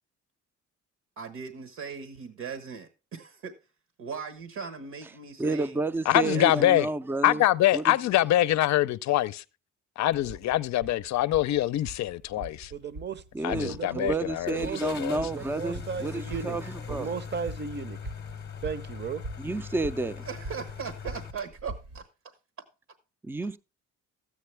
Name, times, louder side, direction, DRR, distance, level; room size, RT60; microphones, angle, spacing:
voice 1, 1.2-3.5 4.0-5.8 6.2-6.7 20.0-22.0, right 6 dB, 70° right, 1.3 m, -39 dB
voice 2, 5.4-7.4 7.7-7.9 13.3-17.1 19.4-20.3 23.2-23.6, right 2 dB, 5° right, 0.4 m, -30 dB
voice 3, 6.1-6.9 7.2-9.4 10.0-12.7 13.4-15.2, left 14 dB, 65° left, 0.5 m, -24 dB
sound 1, 10.1-22.0, right 2 dB, 85° right, 2.1 m, -44 dB
sound 2, 11.3-11.4 11.9-12.0 14.4-21.3, left 7 dB, 35° left, 0.8 m, -41 dB
voice 4, 12.7-14.2 14.5-14.9 15.3-16.6 16.9-18.0 18.6-19.2, right 6 dB, 35° right, 0.7 m, -35 dB
13.0 x 8.3 x 3.3 m
cardioid pair, 90°, 30 cm